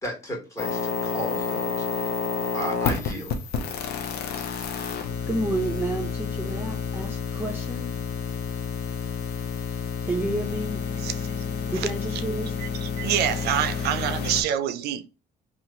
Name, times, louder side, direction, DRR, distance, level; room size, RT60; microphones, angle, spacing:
voice 1, 0.0-2.2 2.5-3.3, equal, 15° left, 1.7 m, -34 dB
sound 1, 0.6-14.4, left 6 dB, 70° left, 0.7 m, -30 dB
voice 2, 5.3-7.9 10.0-10.8 11.7-12.5, right 2 dB, 10° right, 0.7 m, -30 dB
voice 3, 12.6-15.1, right 10 dB, 75° right, 0.4 m, -27 dB
2.9 x 2.4 x 4.1 m
cardioid pair, 110°, 17 cm